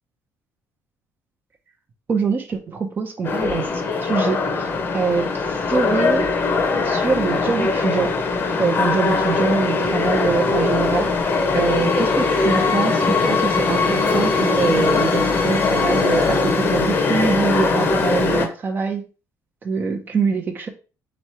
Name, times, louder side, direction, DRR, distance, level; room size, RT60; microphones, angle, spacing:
voice 1, 2.1-3.7 4.0-6.3 6.8-8.1 8.6-11.1 11.5-19.0 19.6-20.7, right 5 dB, 30° right, 4 dB, 0.7 m, -24 dB
sound 1, 3.2-18.5, left 4 dB, 35° left, 0.8 m, -20 dB
3.6 x 3.1 x 4.3 m, 0.34 s
cardioid pair, 140°, 6 cm